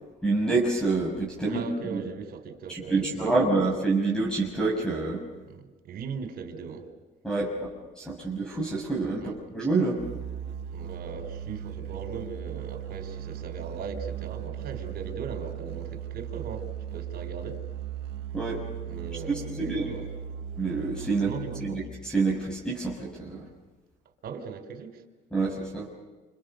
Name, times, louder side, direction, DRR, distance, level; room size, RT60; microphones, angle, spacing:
voice 1, 0.2-1.6 1.9-2.0 2.7-5.2 7.2-7.5 7.9-10.0 18.3-18.6 19.3-19.9 20.6-21.3 21.6-23.4 25.3-25.9, right 3 dB, 5° left, -2 dB, 6.7 m, -27 dB
voice 2, 1.4-3.6 5.5-6.9 9.2-9.4 10.7-17.6 18.9-20.1 21.2-21.8 24.2-25.0, right 5 dB, 65° right, 6 dB, 4.7 m, -39 dB
Musical instrument, 10.0-22.0, right 9 dB, 85° right, 1.8 m, -37 dB
29.5 x 29.0 x 6.8 m, 1.2 s
cardioid pair, 110°, 17 cm